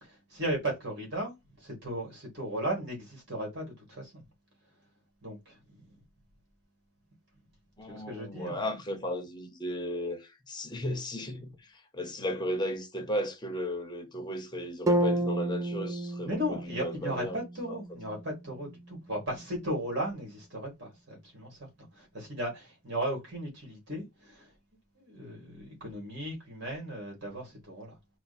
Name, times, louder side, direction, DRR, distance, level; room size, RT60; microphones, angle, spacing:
voice 1, 0.0-4.2 5.2-5.9 7.8-8.6 16.2-21.7 21.9-24.5 25.0-27.9, right 1 dB, 55° right, 2.1 m, -36 dB
voice 2, 7.8-17.4 17.7-17.8, left 1 dB, 20° left, 0.8 m, -35 dB
sound 1, 14.9-18.9, right 1 dB, 15° right, 0.4 m, -32 dB
4.4 x 2.2 x 4.2 m
head